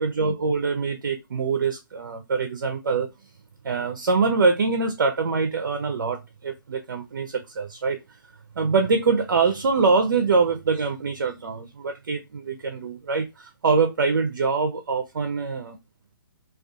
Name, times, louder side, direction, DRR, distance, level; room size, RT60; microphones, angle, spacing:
voice 1, 0.0-3.1 3.6-8.0 8.6-15.8, right 4 dB, 60° right, 0.4 m, -24 dB
2.2 x 2.2 x 2.5 m
figure-of-eight pair, 130°, 12 cm